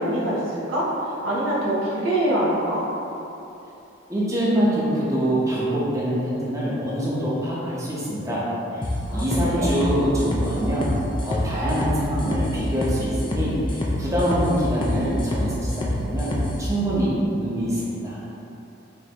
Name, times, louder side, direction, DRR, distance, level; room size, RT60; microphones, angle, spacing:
voice 1, 0.0-2.8 9.1-9.8, right 1 dB, 75° right, -7 dB, 0.8 m, -24 dB
voice 2, 4.1-8.4 8.7-10.9 11.2-18.2, equal, 15° right, -8 dB, 0.7 m, -25 dB
sound 1, 8.8-16.6, left 1 dB, 25° left, 0.3 m, -27 dB
5.3 x 2.6 x 2.9 m, 2.9 s
head